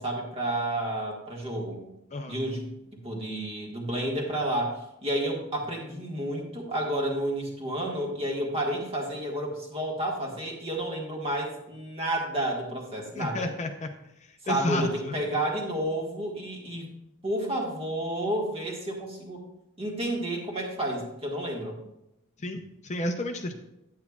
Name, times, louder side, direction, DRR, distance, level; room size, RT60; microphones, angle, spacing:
voice 1, 0.0-1.8 2.3-2.7 3.0-13.5 14.4-16.9 17.2-19.4 19.8-21.8, right 1 dB, 30° right, 0 dB, 1.5 m, -31 dB
voice 2, 13.1-13.9 14.5-15.1 22.4-23.5, left 2 dB, 35° left, 5 dB, 0.6 m, -31 dB
9.4 x 9.1 x 2.4 m, 0.85 s
head